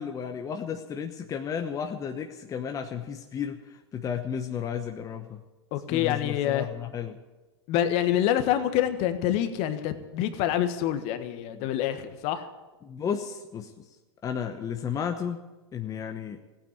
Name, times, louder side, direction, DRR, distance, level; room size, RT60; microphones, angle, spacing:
voice 1, 0.0-5.4 5.9-7.2 11.5-11.7 12.8-13.9 14.2-15.4 15.7-16.4, left 7 dB, 25° left, 5 dB, 1.1 m, -33 dB
voice 2, 5.7-6.7 7.7-12.5, left 11 dB, 45° left, 10 dB, 1.5 m, -26 dB
16.5 x 9.1 x 9.5 m, 1.1 s
hypercardioid pair, 105°, 14 cm